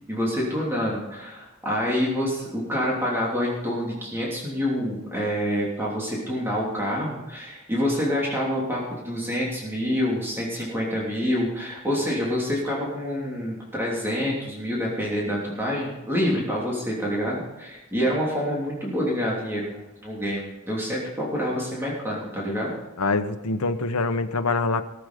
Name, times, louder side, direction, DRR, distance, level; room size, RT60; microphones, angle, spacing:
voice 1, 0.1-22.7, equal, 10° right, -4 dB, 3.1 m, -27 dB
voice 2, 23.0-24.8, left 3 dB, 85° left, 8 dB, 1.0 m, -24 dB
19.0 x 7.9 x 5.2 m, 1.0 s
head